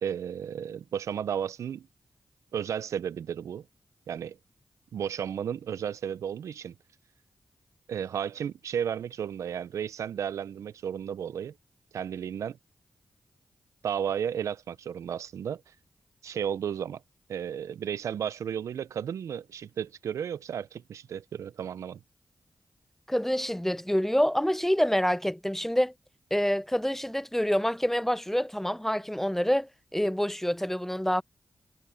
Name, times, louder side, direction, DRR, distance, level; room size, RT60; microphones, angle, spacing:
voice 1, 0.0-1.9 2.5-3.6 4.1-4.4 4.9-6.7 7.9-11.5 11.9-12.6 13.8-15.6 16.2-17.0 17.3-22.0, right 8 dB, 85° right, 0.6 m, -33 dB
voice 2, 23.1-25.9 26.3-31.2, equal, 5° left, 0.6 m, -27 dB
supercardioid pair, 40°, 5 cm